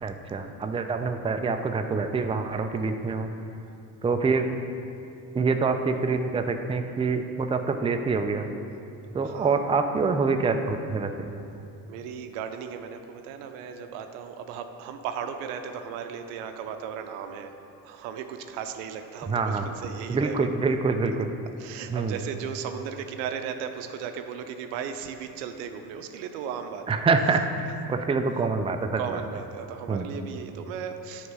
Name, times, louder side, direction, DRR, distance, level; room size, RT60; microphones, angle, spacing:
voice 1, 0.0-3.3 4.0-4.5 5.3-8.5 9.1-11.3 19.3-19.7 20.1-21.3 21.9-22.2 26.9-29.2 29.9-30.1, right 4 dB, 15° right, 6 dB, 0.4 m, -26 dB
voice 2, 9.2-9.6 11.9-17.5 17.8-20.5 21.6-26.9 29.0-31.3, right 7 dB, 90° right, 7 dB, 0.6 m, -36 dB
9.3 x 3.6 x 5.4 m, 2.8 s
supercardioid pair, 75°, 40 cm